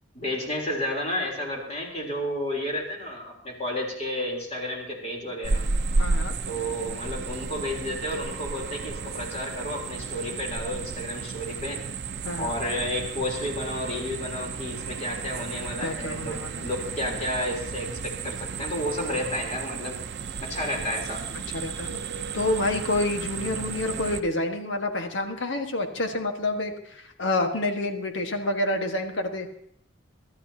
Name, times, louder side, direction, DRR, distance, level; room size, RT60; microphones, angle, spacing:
voice 1, 0.1-5.6 6.5-11.8 12.4-20.0 20.4-21.2, left 1 dB, 35° left, -1 dB, 3.6 m, -31 dB
sound 1, 5.4-24.2, right 4 dB, 60° right, 0.6 m, -33 dB
voice 2, 6.0-6.3 12.2-12.6 15.8-16.5 21.5-22.0 22.3-29.5, left 2 dB, 80° left, 5 dB, 1.6 m, -28 dB
24.0 x 12.5 x 2.9 m, 0.70 s
head